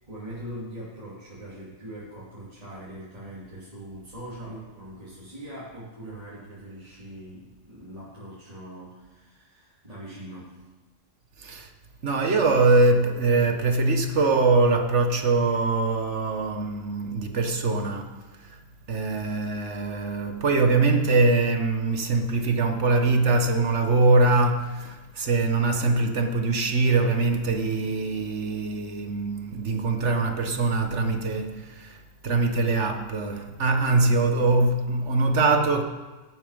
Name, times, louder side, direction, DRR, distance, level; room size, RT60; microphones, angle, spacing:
voice 1, 0.1-10.7, right 1 dB, 30° right, 3.4 m, -41 dB
voice 2, 11.4-11.7 12.0-18.1 18.4-18.6 18.9-35.8, right 3 dB, 70° right, 1.6 m, -23 dB
18.0 x 9.5 x 5.2 m
omnidirectional pair, 1.3 m